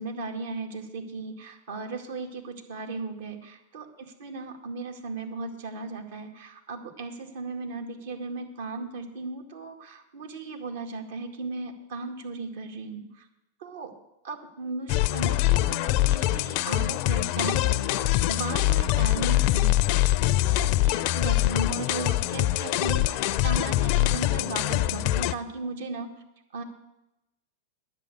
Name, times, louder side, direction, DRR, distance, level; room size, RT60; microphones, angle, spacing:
voice 1, 0.0-13.3 13.6-14.0 14.2-26.1 26.5-26.6, right 3 dB, 70° right, 4 dB, 2.1 m, -36 dB
sound 1, 14.9-25.3, left 16 dB, 50° left, 0.5 m, -24 dB
10.5 x 8.4 x 7.9 m, 0.91 s
hypercardioid pair, 105°, 0 cm